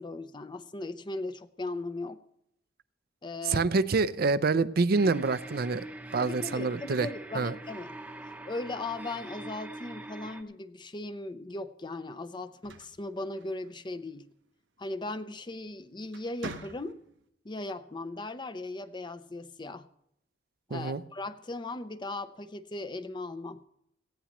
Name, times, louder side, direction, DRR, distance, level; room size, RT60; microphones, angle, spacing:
voice 1, 0.0-2.2 3.2-3.7 6.2-7.9 8.4-14.3 14.8-17.0 17.4-19.9 20.7-23.6, left 2 dB, 25° left, 11 dB, 0.6 m, -38 dB
voice 2, 3.5-5.8 6.1-7.1 7.3-7.5 20.7-21.0, right 4 dB, 55° right, 13 dB, 0.5 m, -26 dB
sound 1, 4.9-10.4, right 1 dB, 10° right, 0.8 m, -43 dB
sound 2, 12.4-14.0 15.4-15.7 16.1-17.3, right 3 dB, 90° right, 1.0 m, -45 dB
18.5 x 15.0 x 3.0 m, 0.75 s
head